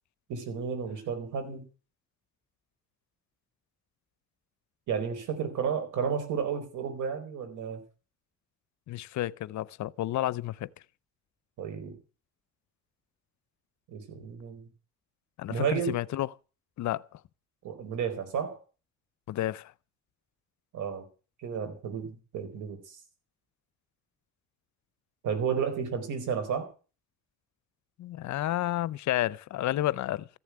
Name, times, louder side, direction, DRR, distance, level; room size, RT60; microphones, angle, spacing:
voice 1, 0.3-1.6 4.9-7.8 11.6-12.0 13.9-14.7 15.5-16.0 17.6-18.6 20.7-21.1 21.4-23.0 25.2-26.7, right 7 dB, 80° right, 4.5 m, -32 dB
voice 2, 8.9-10.7 15.4-16.3 16.8-17.2 19.3-19.7 28.0-30.3, left 14 dB, 70° left, 0.7 m, -31 dB
14.5 x 7.1 x 9.6 m
cardioid pair, 90°, 30 cm